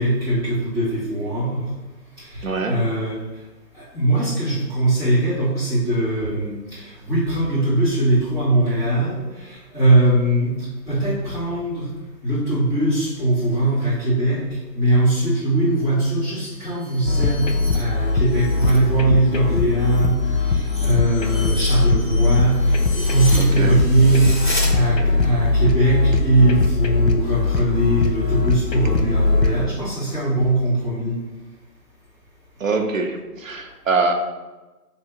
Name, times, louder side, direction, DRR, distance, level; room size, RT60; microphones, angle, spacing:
voice 1, 0.0-1.7 2.2-3.2 3.7-11.9 12.2-14.4 14.7-24.3 24.7-31.2, right 1 dB, 15° right, -18 dB, 1.3 m, -21 dB
voice 2, 2.4-2.8 23.4-23.8 32.6-34.1, right 3 dB, 55° right, 4 dB, 0.6 m, -23 dB
sound 1, 16.4-18.8 19.2-24.7, left 1 dB, 30° left, 0.5 m, -35 dB
sound 2, 17.1-29.7, left 3 dB, 80° left, 0.9 m, -20 dB
3.3 x 2.9 x 4.5 m, 1.1 s
hypercardioid pair, 165°, 49 cm